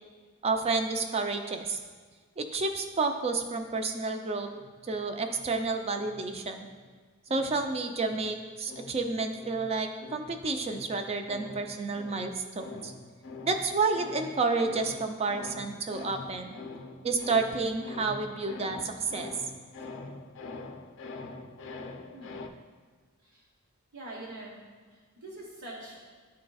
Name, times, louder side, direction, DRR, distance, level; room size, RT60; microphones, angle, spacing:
voice 1, 0.4-1.8 2.4-4.5 4.8-6.7 7.3-12.9 13.4-16.5 17.0-19.3, right 3 dB, 30° right, 6 dB, 0.4 m, -30 dB
sound 1, 4.5-6.9 7.3-22.5, left 3 dB, 60° left, 0.5 m, -45 dB
voice 2, 22.1-22.4 23.2-23.4 23.9-24.6 24.9-26.1, right 2 dB, 75° right, -7 dB, 1.2 m, -44 dB
11.0 x 3.8 x 2.3 m, 1.5 s
head